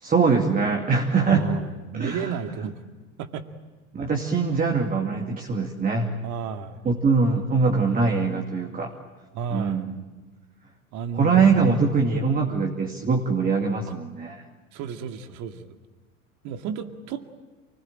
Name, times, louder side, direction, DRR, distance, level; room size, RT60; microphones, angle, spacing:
voice 1, 0.0-1.5 1.9-2.4 3.9-6.1 6.8-8.9 9.5-9.9 11.1-14.4, right 4 dB, 20° right, 2 dB, 2.5 m, -22 dB
voice 2, 1.3-2.8 3.2-3.5 6.2-6.9 9.3-9.9 10.9-12.1 14.7-15.8 16.4-17.3, right 6 dB, 40° right, 7 dB, 2.3 m, -33 dB
29.0 x 20.0 x 9.0 m, 1.3 s
figure-of-eight pair, 80°, 42 cm